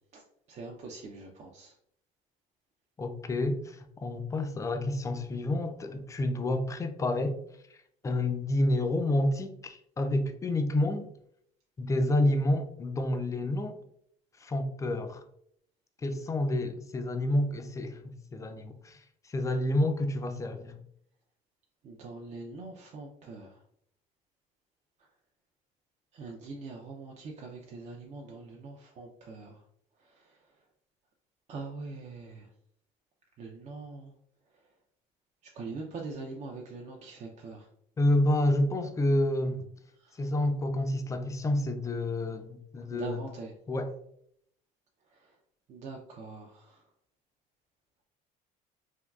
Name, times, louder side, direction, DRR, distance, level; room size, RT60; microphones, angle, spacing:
voice 1, 0.5-1.7 21.8-23.5 26.1-29.6 31.5-32.4 33.4-34.1 35.6-37.6 42.9-43.5 45.7-46.6, right 3 dB, 45° right, 0.4 m, -42 dB
voice 2, 3.0-7.4 8.0-11.1 11.8-13.8 14.4-15.2 16.0-20.8 38.0-39.7 40.2-43.3 43.7-43.9, left 1 dB, 20° left, 0.3 m, -29 dB
3.5 x 2.3 x 2.3 m
supercardioid pair, 100°, 17 cm